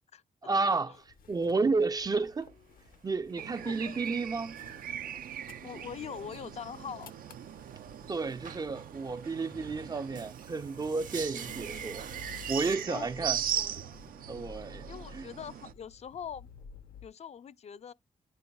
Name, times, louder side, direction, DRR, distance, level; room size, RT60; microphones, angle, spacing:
voice 1, 0.4-2.5 3.0-4.6 8.1-12.1 12.5-13.4 14.3-14.9 15.1-15.3, right 4 dB, 25° right, 0.4 m, -31 dB
sound 1, 0.9-17.1, left 4 dB, 80° left, 0.8 m, -54 dB
sound 2, 2.0-12.8, right 6 dB, 65° right, 1.0 m, -50 dB
sound 3, 3.4-15.7, right 9 dB, 85° right, 0.5 m, -40 dB
voice 2, 3.7-4.0 5.6-7.1 12.9-14.0 14.9-16.5 17.0-17.9, left 8 dB, 50° left, 0.4 m, -43 dB
9.8 x 5.4 x 2.3 m
wide cardioid pair, 120°, 14 cm